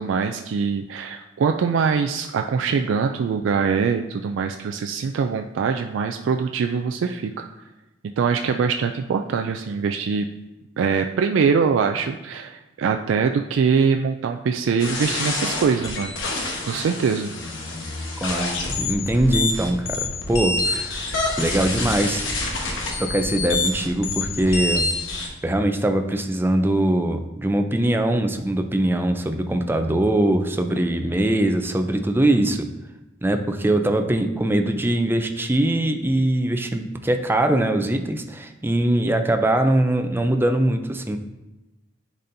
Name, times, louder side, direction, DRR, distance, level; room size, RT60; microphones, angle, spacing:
voice 1, 0.0-7.5 8.2-10.3 10.8-16.2 16.7-17.3, right 5 dB, 80° right, 5 dB, 0.3 m, -23 dB
sound 1, 14.8-25.3, left 2 dB, 85° left, 1.1 m, -27 dB
voice 2, 18.2-21.0 21.4-22.3 23.0-24.9 25.4-32.7 33.2-41.2, right 1 dB, 10° right, 6 dB, 0.4 m, -22 dB
10.0 x 4.2 x 2.6 m, 1.0 s
head